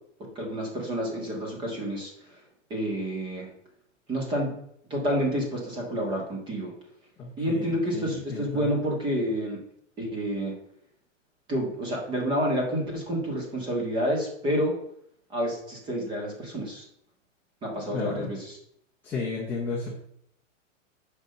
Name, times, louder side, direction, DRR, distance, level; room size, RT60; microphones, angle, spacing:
voice 1, 0.3-2.4 2.7-3.5 4.1-4.5 4.9-6.7 7.4-9.6 10.0-10.5 11.5-14.7 15.3-16.8 17.6-18.6, equal, 10° right, -1 dB, 1.5 m, -29 dB
voice 2, 7.2-8.7 17.9-18.3 19.0-20.0, left 4 dB, 5° left, -7 dB, 0.7 m, -33 dB
6.2 x 5.0 x 6.7 m, 0.71 s
supercardioid pair, 180°, 38 cm